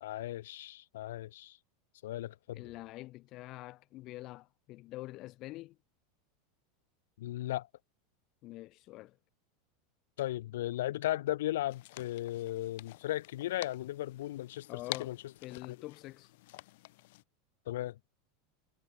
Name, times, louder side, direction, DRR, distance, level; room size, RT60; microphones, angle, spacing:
voice 1, 0.0-1.6 2.0-2.6 7.2-7.7 10.2-14.7 15.0-15.2 15.7-15.8 17.7-18.0, left 14 dB, 85° left, 0.6 m, -36 dB
voice 2, 2.5-5.8 8.4-9.2 14.7-16.3, left 18 dB, 40° left, 0.6 m, -46 dB
sound 1, 11.7-17.2, left 20 dB, 65° left, 1.5 m, -48 dB
supercardioid pair, 145°, 0 cm